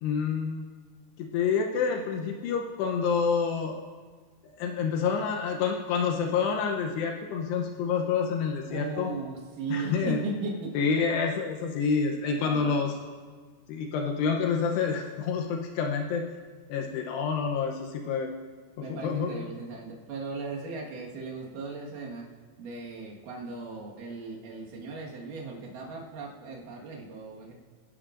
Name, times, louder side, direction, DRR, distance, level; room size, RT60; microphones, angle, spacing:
voice 1, 0.0-0.7 1.2-3.8 4.6-9.1 9.7-10.2 10.7-12.9 13.7-16.3 16.7-18.3 18.8-19.4, left 6 dB, 90° left, 2 dB, 2.3 m, -28 dB
voice 2, 8.7-10.7 12.2-12.8 18.8-22.2 22.6-27.5, right 3 dB, 60° right, -2 dB, 2.3 m, -37 dB
28.0 x 11.0 x 2.5 m, 1.6 s
omnidirectional pair, 5.9 m